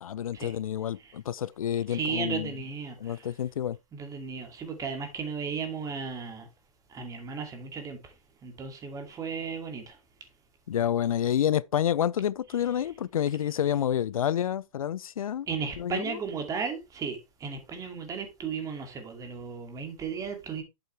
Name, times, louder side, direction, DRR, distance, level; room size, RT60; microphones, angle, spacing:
voice 1, 0.0-2.5 3.0-3.8 10.7-15.5 15.8-16.2, left 10 dB, 85° left, 0.4 m, -29 dB
voice 2, 1.9-3.3 3.9-6.5 6.9-8.1 8.4-10.0 15.5-20.6, right 5 dB, 20° right, 2.4 m, -35 dB
8.1 x 7.9 x 3.3 m
hypercardioid pair, 125°, 17 cm